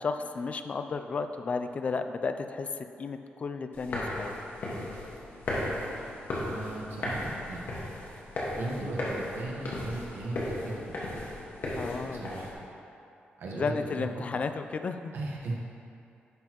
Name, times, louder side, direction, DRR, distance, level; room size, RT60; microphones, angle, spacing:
voice 1, 0.0-2.7 3.0-4.3 11.7-12.3 13.5-15.1, left 4 dB, 40° left, 8 dB, 0.3 m, -33 dB
sound 1, 3.7-12.5, left 1 dB, 60° left, 1.6 m, -35 dB
voice 2, 6.5-7.2 7.5-7.9 8.6-11.0 12.1-12.5 13.4-14.1 15.1-15.6, right 2 dB, 75° right, -3 dB, 1.2 m, -37 dB
10.5 x 6.1 x 3.0 m, 2.7 s
wide cardioid pair, 155°, 4 cm